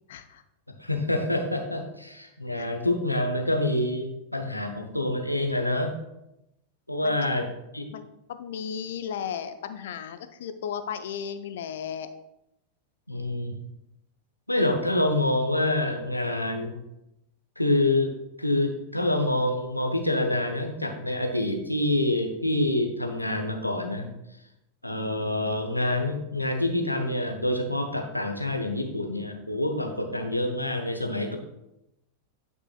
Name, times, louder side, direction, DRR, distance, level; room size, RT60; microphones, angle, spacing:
voice 1, 0.1-0.4 2.6-2.7 7.0-7.3 7.9-12.1 13.1-13.3, left 8 dB, 60° left, 11 dB, 0.5 m, -35 dB
voice 2, 0.8-6.0 6.9-7.4 7.7-7.9 13.1-13.6 14.5-16.8 17.6-24.1 24.8-31.4, left 1 dB, 85° left, 4 dB, 0.8 m, -27 dB
9.4 x 5.4 x 2.4 m, 0.88 s
figure-of-eight pair, 90°, 0 cm